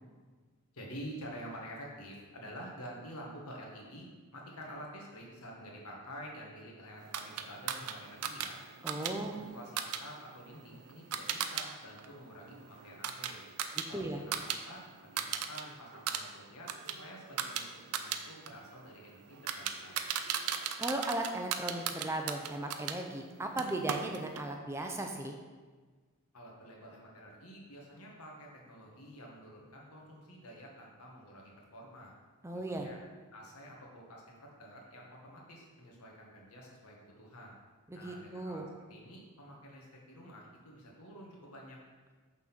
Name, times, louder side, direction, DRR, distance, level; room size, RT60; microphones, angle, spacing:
voice 1, 0.7-4.1 4.3-8.6 9.0-13.4 13.9-20.0 26.3-32.1 32.7-33.0 33.3-37.6 37.9-38.6 38.9-41.8, equal, 80° left, -1 dB, 1.5 m, -49 dB
sound 1, 7.1-11.7 12.0-14.6 14.9-15.6 15.9-23.0 23.6-24.5, right 8 dB, 85° right, 0.5 m, -38 dB
voice 2, 8.8-9.4 13.9-14.2 20.8-25.3 32.4-32.9 38.0-38.6, right 1 dB, 10° right, 3 dB, 0.4 m, -36 dB
6.0 x 3.9 x 5.9 m, 1.4 s
head